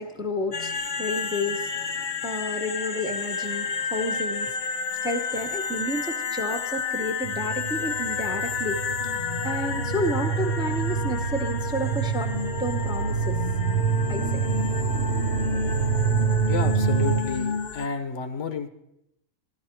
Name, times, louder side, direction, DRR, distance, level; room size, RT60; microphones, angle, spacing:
voice 1, 0.0-4.6 5.0-8.8 9.2-12.3 12.6-13.4 14.1-14.6, left 1 dB, 5° right, 7 dB, 0.7 m, -31 dB
sound 1, 0.5-17.9, left 6 dB, 50° left, 0.6 m, -31 dB
sound 2, 7.2-17.2, right 6 dB, 90° right, 1.1 m, -27 dB
voice 2, 16.5-18.7, left 5 dB, 65° left, 9 dB, 1.1 m, -31 dB
13.5 x 13.0 x 4.4 m, 0.83 s
omnidirectional pair, 1.3 m